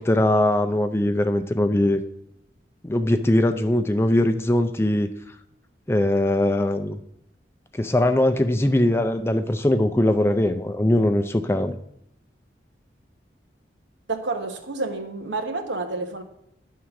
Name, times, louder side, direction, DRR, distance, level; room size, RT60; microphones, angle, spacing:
voice 1, 0.0-2.0 2.8-5.1 5.9-7.0 7.8-11.8, left 1 dB, 15° left, 8 dB, 0.4 m, -21 dB
voice 2, 14.1-16.2, right 3 dB, 90° right, 5 dB, 1.1 m, -29 dB
11.0 x 3.7 x 5.8 m, 0.78 s
head